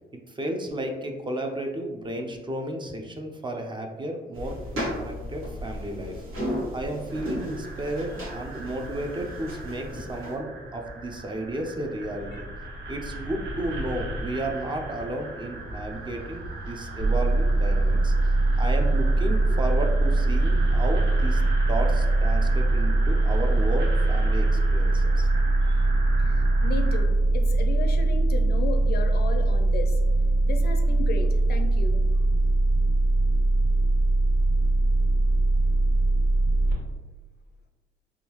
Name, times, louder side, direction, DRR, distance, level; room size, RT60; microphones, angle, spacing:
voice 1, 0.3-4.6 5.0-6.2 6.7-12.5 12.9-21.4 21.7-25.3 25.6-25.9, right 1 dB, 25° right, 3 dB, 0.4 m, -33 dB
sound 1, 4.3-10.3, equal, 85° right, 1.4 m, -35 dB
sound 2, 7.1-27.1, right 2 dB, 65° right, 0.6 m, -37 dB
sound 3, 17.0-36.7, right 2 dB, 45° right, 1.3 m, -21 dB
voice 2, 26.2-30.0 30.4-32.0, left 4 dB, 55° left, 5 dB, 0.5 m, -34 dB
3.6 x 2.3 x 2.9 m, 1.2 s
cardioid pair, 90°, 20 cm